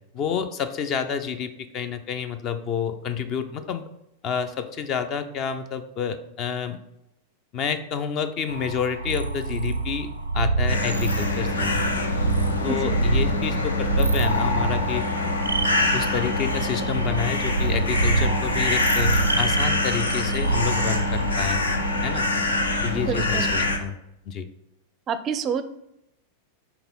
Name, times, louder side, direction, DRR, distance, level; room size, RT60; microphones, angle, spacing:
voice 1, 0.1-3.8 4.2-6.8 7.5-10.1 10.3-11.8 12.6-15.1 15.9-21.6 22.0-22.3 22.8-24.0 24.3-24.5, left 7 dB, 35° left, 10 dB, 0.5 m, -29 dB
sound 1, 8.5-22.3, right 3 dB, 80° right, 0.5 m, -27 dB
sound 2, 10.7-23.8, left 2 dB, 75° left, 0.7 m, -25 dB
voice 2, 12.7-13.0 23.0-23.5 25.1-25.6, right 6 dB, 30° right, 11 dB, 0.4 m, -28 dB
5.9 x 3.7 x 5.2 m, 0.82 s
figure-of-eight pair, 90°, 0 cm